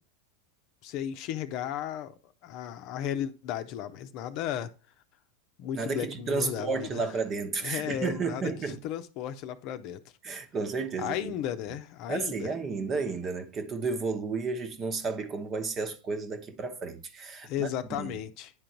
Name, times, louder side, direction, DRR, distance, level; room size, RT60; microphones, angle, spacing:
voice 1, 0.8-4.7 5.6-7.1 7.6-10.0 11.0-12.5 17.4-18.5, left 10 dB, 55° left, 0.7 m, -35 dB
voice 2, 5.8-8.8 10.2-11.3 12.1-17.7 18.0-18.1, right 4 dB, 30° right, 1.0 m, -32 dB
9.5 x 3.9 x 4.4 m
hypercardioid pair, 105°, 0 cm